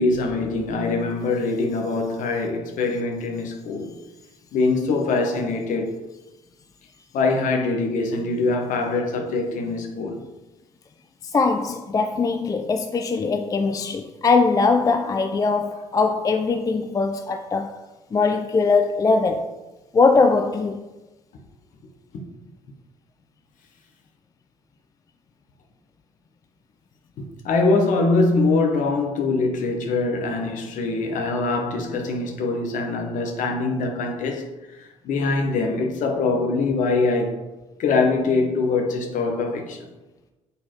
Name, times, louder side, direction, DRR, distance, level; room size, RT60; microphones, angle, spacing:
voice 1, 0.0-3.9 4.5-5.9 7.1-10.2 22.1-22.2 27.2-34.5 34.8-37.4 37.8-39.8, left 3 dB, 50° left, 1.0 m, -23 dB
voice 2, 11.3-17.8 18.1-19.5 19.9-20.8, left 4 dB, 20° left, 0.4 m, -21 dB
8.0 x 4.1 x 2.9 m
figure-of-eight pair, 50°, 17 cm